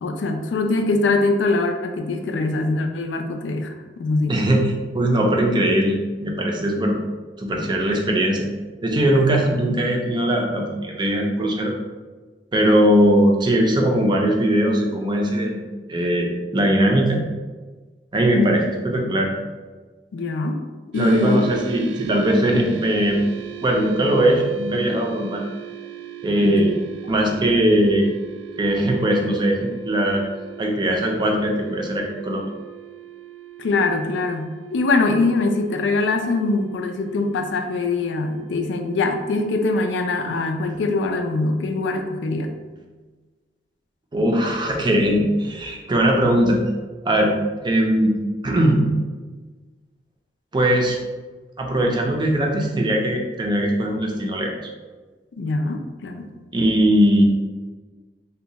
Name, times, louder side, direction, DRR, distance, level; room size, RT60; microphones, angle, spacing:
voice 1, 0.0-4.3 18.4-18.7 20.1-20.6 20.9-21.5 26.4-26.7 33.6-42.5 55.4-56.3, left 3 dB, 85° left, 5 dB, 0.4 m, -23 dB
voice 2, 4.3-7.0 7.4-8.5 8.8-11.7 12.5-15.6 15.9-17.2 18.1-19.3 21.0-23.2 23.6-25.4 26.2-26.8 27.1-28.1 28.6-30.2 30.6-32.5 44.1-46.6 47.0-47.3 47.6-48.2 48.4-48.9 50.5-51.0 51.6-54.5 56.5-57.2, right 1 dB, 25° right, 1 dB, 0.5 m, -20 dB
sound 1, 20.9-40.6, right 11 dB, 90° right, 0.3 m, -40 dB
2.7 x 2.2 x 3.9 m, 1.3 s
head